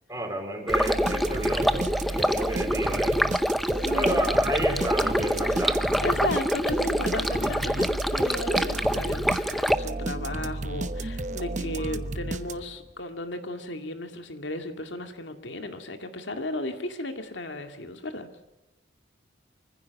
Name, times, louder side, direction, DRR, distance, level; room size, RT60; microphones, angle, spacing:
voice 1, 0.1-3.2 3.9-6.0, right 1 dB, 15° right, 3 dB, 4.3 m, -31 dB
Stream, 0.7-9.8, equal, ahead, 0.6 m, -26 dB
sound 1, 0.7-12.9, right 2 dB, 40° right, 1.0 m, -33 dB
voice 2, 3.8-4.2 5.5-5.7 6.0-18.3, left 1 dB, 80° left, 6 dB, 2.2 m, -34 dB
24.5 x 15.5 x 7.0 m, 1.1 s
head